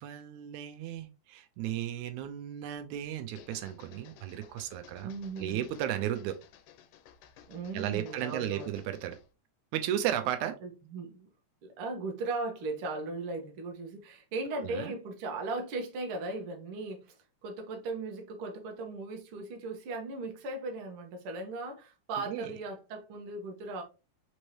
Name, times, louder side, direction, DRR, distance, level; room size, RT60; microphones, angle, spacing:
voice 1, 0.0-6.4 7.7-9.2 9.7-10.6 14.6-14.9 22.3-22.5, right 11 dB, 80° right, 1.9 m, -35 dB
sound 1, 3.2-9.3, left 9 dB, 85° left, 2.2 m, -56 dB
voice 2, 5.0-5.7 7.5-8.7 10.6-11.3 11.6-17.2 17.4-23.8, right 3 dB, 60° right, 1.5 m, -37 dB
5.2 x 3.2 x 2.9 m
omnidirectional pair, 3.6 m